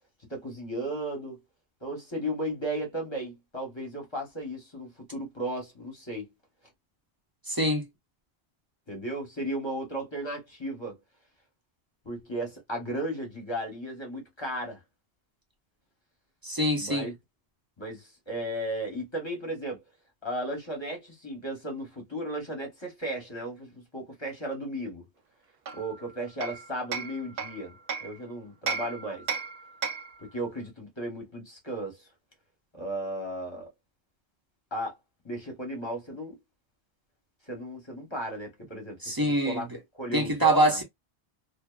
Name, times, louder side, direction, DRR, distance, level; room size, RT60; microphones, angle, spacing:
voice 1, 0.3-1.4 1.8-6.3 8.9-11.0 12.0-14.8 16.7-17.1 17.8-19.8 20.2-25.0 25.7-29.2 30.2-32.1 32.7-33.7 34.7-34.9 35.2-36.3 37.4-39.7 39.9-40.8, right 1 dB, 25° left, 1.1 m, -35 dB
voice 2, 7.5-7.8 16.4-17.0 39.0-39.6 40.1-40.8, right 1 dB, 20° right, 0.8 m, -24 dB
Hammer, 25.7-28.2 28.7-30.2, right 5 dB, 65° right, 0.7 m, -35 dB
2.7 x 2.5 x 2.3 m
omnidirectional pair, 1.1 m